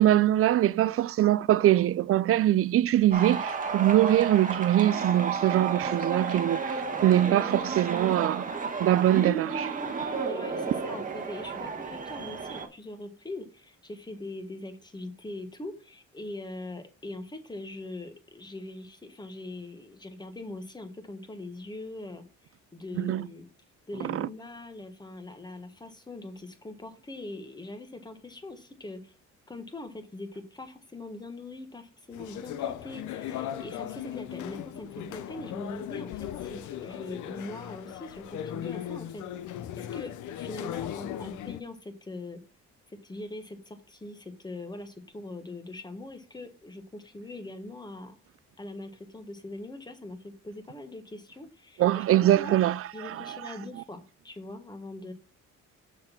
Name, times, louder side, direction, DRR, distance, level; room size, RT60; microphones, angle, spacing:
voice 1, 0.0-8.4 8.8-9.7 23.0-23.3 24.0-24.3 51.8-53.3, right 13 dB, 50° right, 0.4 m, -23 dB
sound 1, 3.1-12.7, right 5 dB, 25° right, 1.2 m, -32 dB
voice 2, 10.3-22.2 22.7-23.5 23.9-29.1 29.5-39.3 39.8-42.4 42.9-48.2 48.6-52.6 52.9-55.1, left 2 dB, 15° left, 1.4 m, -42 dB
sound 2, 32.1-41.6, left 11 dB, 80° left, 0.6 m, -37 dB
6.4 x 4.1 x 5.9 m
cardioid pair, 90°, 30 cm